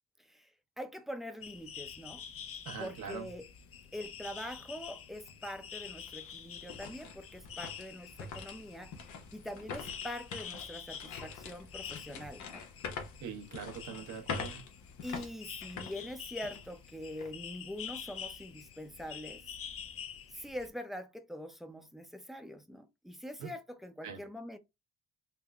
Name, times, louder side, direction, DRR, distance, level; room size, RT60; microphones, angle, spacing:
voice 1, 0.8-2.2 2.8-3.4 3.9-8.9 9.3-12.6 15.0-19.4 20.3-24.6, left 1 dB, ahead, 0.6 m, -44 dB
sound 1, 1.4-20.7, left 8 dB, 50° left, 0.6 m, -47 dB
voice 2, 2.6-3.3 13.2-14.6 23.4-23.5 24.0-24.2, right 6 dB, 85° right, 1.1 m, -42 dB
sound 2, 5.3-5.4 5.9-16.8 17.2-17.3 17.9-18.2, left 5 dB, 70° left, 1.0 m, -45 dB
3.5 x 2.2 x 3.5 m
cardioid pair, 90°, 30 cm